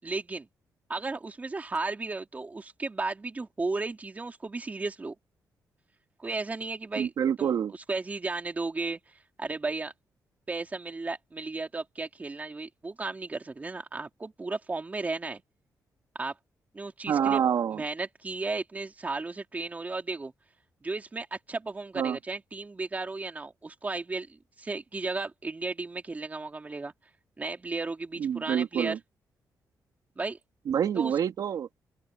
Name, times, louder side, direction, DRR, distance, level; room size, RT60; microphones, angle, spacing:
voice 1, 0.0-0.5 0.9-5.1 6.2-7.1 7.4-7.5 7.9-9.9 10.5-15.4 16.2-16.3 16.7-17.4 17.7-20.3 20.8-26.9 27.4-28.9 30.2-30.4 30.9-31.1, right 3 dB, 25° right, 3.2 m, -34 dB
voice 2, 7.0-7.7 17.1-17.8 22.0-22.2 28.2-29.0 30.7-31.7, right 8 dB, 70° right, 3.1 m, -27 dB
open air
cardioid pair, 120°, 7 cm